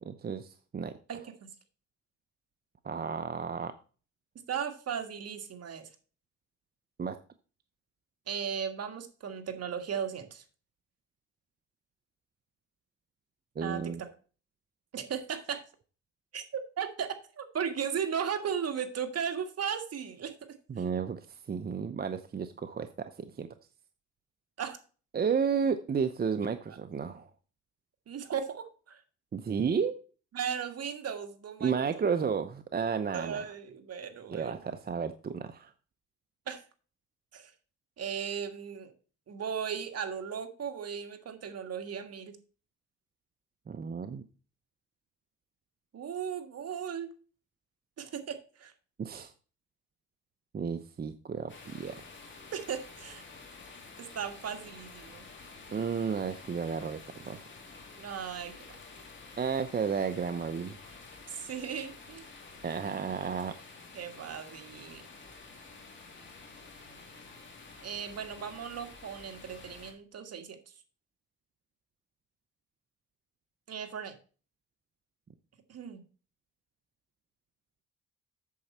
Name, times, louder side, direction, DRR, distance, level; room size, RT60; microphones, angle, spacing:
voice 1, 0.0-0.9 2.8-3.7 7.0-7.2 13.6-14.0 20.7-23.5 25.1-27.3 29.3-29.9 31.6-33.5 34.3-35.7 43.7-44.2 49.0-49.3 50.5-52.0 55.7-57.4 59.4-60.8 62.6-63.5, right 6 dB, 30° right, 9 dB, 0.7 m, -32 dB
voice 2, 4.5-5.9 8.3-10.4 13.6-14.1 14.9-15.6 16.3-20.3 24.6-24.8 28.1-29.0 30.3-31.7 33.1-34.5 36.5-36.6 37.3-37.5 38.0-38.9 39.3-42.4 45.9-47.1 48.0-48.7 52.5-53.2 54.0-55.2 58.0-58.8 61.3-62.3 63.9-65.0 67.8-70.6 73.7-74.1 75.7-76.0, right 7 dB, 55° right, 6 dB, 1.7 m, -36 dB
sound 1, 51.5-69.9, left 3 dB, 40° left, 2.9 m, -50 dB
8.5 x 7.0 x 4.3 m, 0.37 s
cardioid pair, 90°, 30 cm